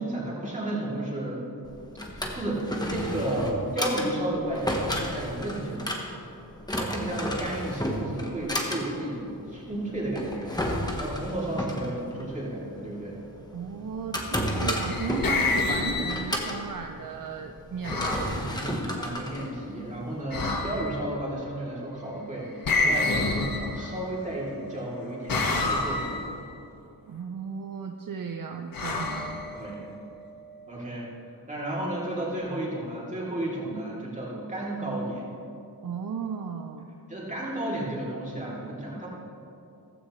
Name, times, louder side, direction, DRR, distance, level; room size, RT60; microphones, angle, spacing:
voice 1, 0.0-1.4 2.1-5.9 6.7-10.6 11.0-13.1 18.3-26.4 29.5-29.9 30.7-31.1 31.5-35.3 37.1-39.1, right 1 dB, 20° right, -6 dB, 3.1 m, -33 dB
Drawer open or close, 1.6-20.2, equal, 10° left, 1.3 m, -33 dB
voice 2, 13.5-18.7 27.1-29.4 35.8-36.9, right 6 dB, 50° right, 4 dB, 0.7 m, -35 dB
sound 1, 14.6-16.6 17.8-18.3 20.3-21.0 22.6-24.1 25.3-26.3 28.7-29.9, left 3 dB, 55° left, 1.6 m, -28 dB
16.0 x 15.0 x 3.2 m, 2.8 s
wide cardioid pair, 180°, 41 cm